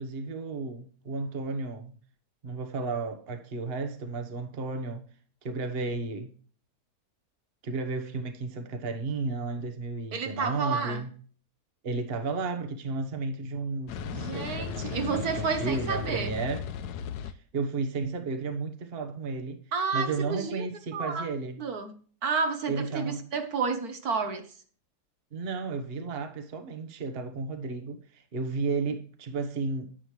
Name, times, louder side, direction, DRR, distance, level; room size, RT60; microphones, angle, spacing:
voice 1, 0.0-1.9 2.4-5.0 5.4-6.3 7.6-11.1 11.8-16.7 17.2-19.6 19.9-21.6 22.7-23.2 25.3-29.9, right 3 dB, 40° right, 1.3 m, -33 dB
voice 2, 10.1-11.0 14.1-16.4 19.7-20.7 20.9-21.3 21.6-22.0 22.2-24.5, right 5 dB, 65° right, 1.6 m, -30 dB
sound 1, 13.9-17.3, left 8 dB, 75° left, 1.2 m, -36 dB
10.0 x 9.0 x 3.2 m
omnidirectional pair, 1.7 m